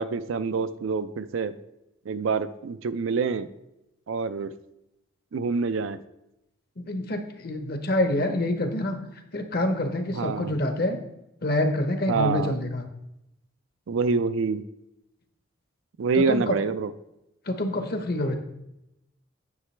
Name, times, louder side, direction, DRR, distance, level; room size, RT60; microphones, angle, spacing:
voice 1, 0.0-1.5 2.1-3.5 4.1-4.5 5.3-6.0 10.1-10.5 12.1-12.6 13.9-14.6 16.0-16.9, right 5 dB, 70° right, 12 dB, 0.4 m, -26 dB
voice 2, 6.8-9.0 9.3-11.0 11.4-12.8 16.1-16.6 17.5-18.4, left 1 dB, 45° left, 7 dB, 0.9 m, -26 dB
9.6 x 6.7 x 3.2 m, 0.87 s
head